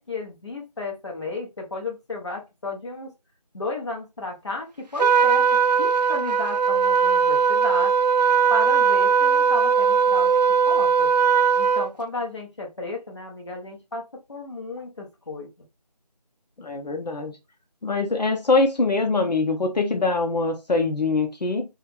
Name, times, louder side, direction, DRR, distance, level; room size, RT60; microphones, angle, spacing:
voice 1, 0.0-3.1 3.5-7.9 8.5-10.3 10.6-11.1 11.6-15.5, left 3 dB, 45° left, 1.0 m, -33 dB
Trumpet, 5.0-11.9, right 6 dB, 75° right, 0.4 m, -19 dB
voice 2, 16.6-17.3 17.8-21.6, left 3 dB, 75° left, 0.8 m, -23 dB
3.3 x 2.4 x 3.2 m
figure-of-eight pair, 170°, 21 cm